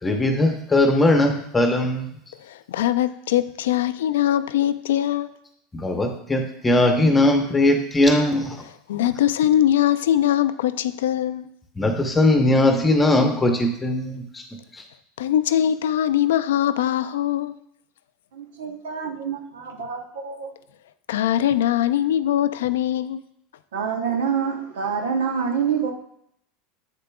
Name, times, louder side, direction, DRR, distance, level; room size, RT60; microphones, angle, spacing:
voice 1, 0.0-2.1 5.7-8.6 11.8-14.4 14.7-14.8, left 1 dB, 15° left, 0.8 m, -19 dB
voice 2, 2.4-5.3 8.9-11.5 15.2-17.5 21.1-23.2, left 11 dB, 85° left, 0.3 m, -21 dB
voice 3, 18.3-20.5 23.7-25.9, right 6 dB, 90° right, 0.8 m, -26 dB
7.6 x 6.7 x 2.3 m
supercardioid pair, 110°, 0 cm